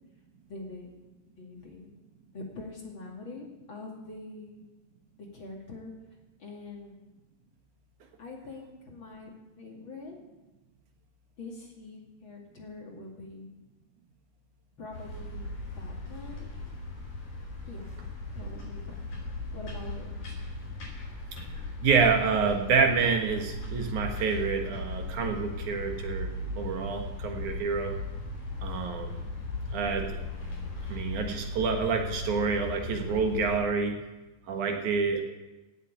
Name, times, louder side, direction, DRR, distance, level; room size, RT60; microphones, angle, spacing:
voice 1, 0.5-0.9 1.4-1.9 2.3-4.7 5.2-5.9 6.4-7.0 8.2-10.2 11.4-13.5 14.8-15.5 15.8-16.5 17.7-17.9 18.3-18.8 19.5-20.4, left 3 dB, 40° left, -1 dB, 2.8 m, -44 dB
sound 1, 14.9-33.6, left 2 dB, 65° left, 6.2 m, -37 dB
voice 2, 21.8-27.9 28.6-29.2 29.7-30.2 30.9-34.0 34.5-35.2, right 5 dB, 70° right, 3 dB, 2.9 m, -28 dB
17.0 x 7.7 x 8.5 m, 1.1 s
omnidirectional pair, 3.7 m